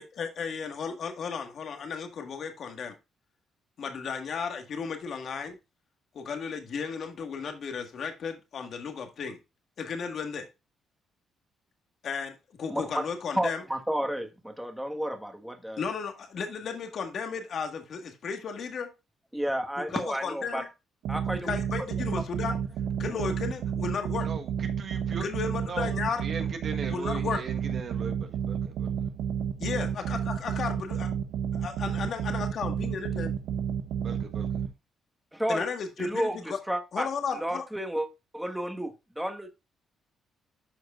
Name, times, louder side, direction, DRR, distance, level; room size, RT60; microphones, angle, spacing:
voice 1, 0.0-2.9 3.8-5.6 6.1-9.4 9.8-10.5 12.0-13.6 15.8-18.9 19.9-20.7 21.4-22.6 23.0-24.3 25.2-26.2 26.9-27.4 29.6-31.1 31.5-33.3 35.5-36.6 36.9-37.6, left 5 dB, 60° left, 1.7 m, -34 dB
voice 2, 12.7-13.1 13.3-15.8 19.3-20.7 21.1-21.6 22.1-22.2 23.0-23.3 35.3-35.7 36.0-36.4 36.7-37.1 37.3-38.1 38.3-39.5, equal, 5° right, 1.5 m, -31 dB
sound 1, 21.0-34.7, right 8 dB, 85° right, 0.9 m, -31 dB
voice 3, 24.2-25.3 25.7-25.9 26.2-28.9 29.7-29.9 34.0-34.6, right 5 dB, 55° right, 1.4 m, -39 dB
12.5 x 4.7 x 2.5 m
cardioid pair, 90°, 0 cm